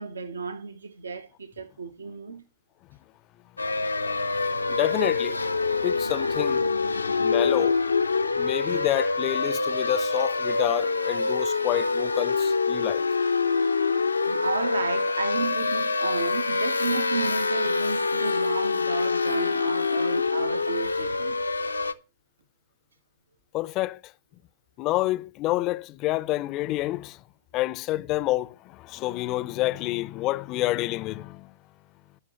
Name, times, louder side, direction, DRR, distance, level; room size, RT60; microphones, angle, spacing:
voice 1, 0.0-2.4 8.3-8.4 14.2-21.4, right 4 dB, 75° right, 1.0 m, -33 dB
sound 1, 3.6-21.9, left 4 dB, 85° left, 0.6 m, -25 dB
voice 2, 4.7-5.4 5.8-6.7 7.2-7.8 8.4-13.0 23.5-24.0 24.8-27.2 27.5-31.5, left 17 dB, 35° left, 0.5 m, -28 dB
16.5 x 6.0 x 3.0 m
figure-of-eight pair, 105°, 0 cm